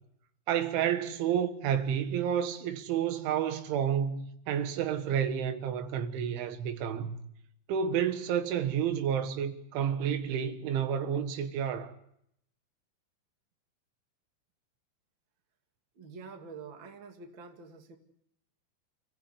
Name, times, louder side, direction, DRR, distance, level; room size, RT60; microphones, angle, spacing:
voice 1, 0.5-7.2 7.7-11.9, right 8 dB, 85° right, 3.9 m, -30 dB
voice 2, 16.0-18.0, right 5 dB, 35° right, 2.0 m, -47 dB
28.5 x 16.5 x 8.3 m
omnidirectional pair, 5.4 m